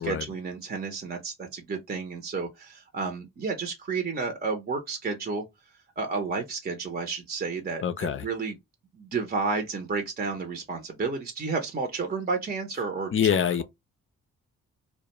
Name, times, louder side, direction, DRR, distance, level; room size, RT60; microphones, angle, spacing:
voice 1, 0.0-5.4 6.0-8.5 8.9-13.1, right 4 dB, 30° right, 0.7 m, -31 dB
voice 2, 7.8-8.3 13.1-13.6, left 8 dB, 40° left, 0.4 m, -25 dB
2.3 x 2.2 x 2.9 m
supercardioid pair, 60°, 32 cm